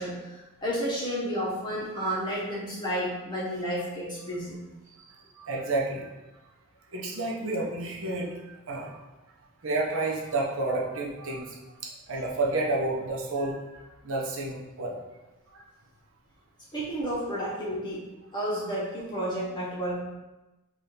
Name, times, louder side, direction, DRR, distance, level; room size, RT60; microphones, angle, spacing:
voice 1, 0.0-4.6 16.7-18.0 18.3-20.0, equal, 20° left, -6 dB, 0.9 m, -31 dB
voice 2, 5.4-6.1 6.9-8.3 8.7-9.0 9.6-11.4 12.1-13.5 14.0-15.0 15.5-15.6, right 2 dB, 65° right, -3 dB, 0.6 m, -30 dB
3.4 x 2.5 x 4.2 m, 1.0 s
head